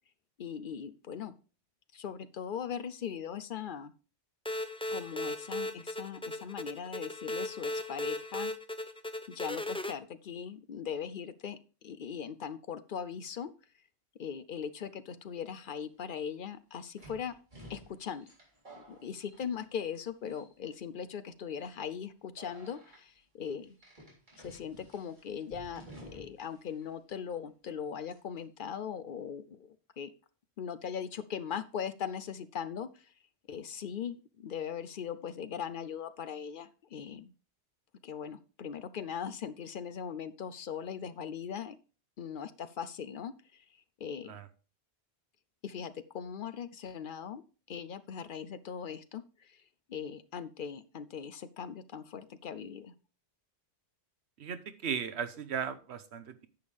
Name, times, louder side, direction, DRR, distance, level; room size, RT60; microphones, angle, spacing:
voice 1, 0.4-1.4 1.9-3.9 4.9-8.5 9.3-13.5 14.2-17.3 17.7-18.3 18.7-23.8 24.4-25.9 26.1-30.1 30.6-33.1 33.5-37.3 38.0-41.8 42.2-43.7 44.0-44.3 45.6-47.4 47.7-49.6 49.9-52.9, left 7 dB, 60° left, 14 dB, 0.7 m, -40 dB
sound 1, 4.4-9.9, left 1 dB, 10° left, 0.4 m, -37 dB
sound 2, 15.6-15.7 17.0-20.0 20.2-20.8 21.4-21.6 22.4-23.0 23.8-26.5 26.8-26.9 28.1-28.4, equal, 45° right, 3.5 m, -53 dB
voice 2, 54.4-56.5, right 7 dB, 80° right, 12 dB, 1.1 m, -36 dB
10.5 x 7.1 x 3.3 m, 0.37 s
omnidirectional pair, 1.1 m